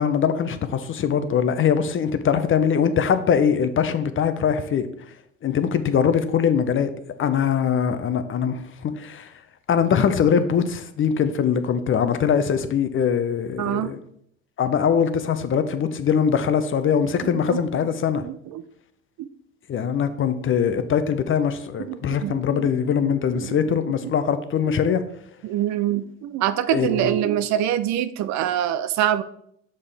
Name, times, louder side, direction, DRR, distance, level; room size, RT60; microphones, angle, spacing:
voice 1, 0.0-4.9 5.4-6.9 7.2-9.3 9.7-14.0 14.6-18.3 19.7-25.0 26.7-27.1, left 7 dB, 30° left, 0.7 m, -22 dB
voice 2, 13.6-13.9 17.2-17.6 18.2-18.6 19.2-19.3 21.8-23.6 25.4-29.2, right 11 dB, 45° right, 0.5 m, -25 dB
6.6 x 5.5 x 3.4 m
hypercardioid pair, 65°, 39 cm